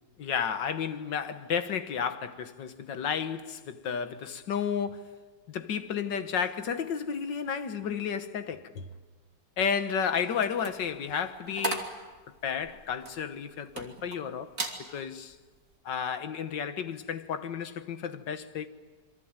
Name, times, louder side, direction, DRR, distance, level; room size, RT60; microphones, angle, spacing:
voice 1, 0.2-5.2 5.5-8.9 9.6-11.9 12.4-14.5 14.8-15.4 15.9-18.7, left 7 dB, 80° left, 2.0 m, -32 dB
sound 1, 10.3-14.2 14.5-14.8 15.3-15.6, right 3 dB, 45° right, 3.1 m, -37 dB
27.5 x 23.5 x 9.0 m
omnidirectional pair, 1.9 m